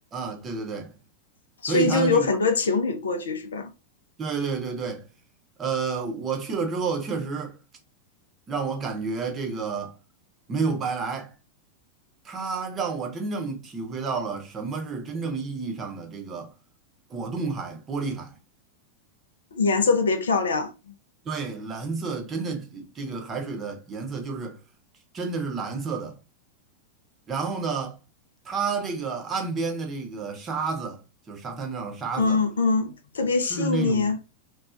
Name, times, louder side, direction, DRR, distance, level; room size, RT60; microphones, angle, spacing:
voice 1, 0.1-0.9 1.7-2.3 4.2-5.0 5.6-7.6 8.5-9.9 10.5-11.3 12.2-16.5 17.1-18.3 21.2-24.6 25.1-26.2 27.3-28.0 28.4-31.0 31.3-32.4 33.5-34.1, right 4 dB, 25° right, 0.8 m, -30 dB
voice 2, 1.6-3.7 19.5-20.7 32.2-34.2, left 4 dB, 70° left, 0.5 m, -23 dB
3.0 x 2.3 x 2.5 m
figure-of-eight pair, 90°, 0 cm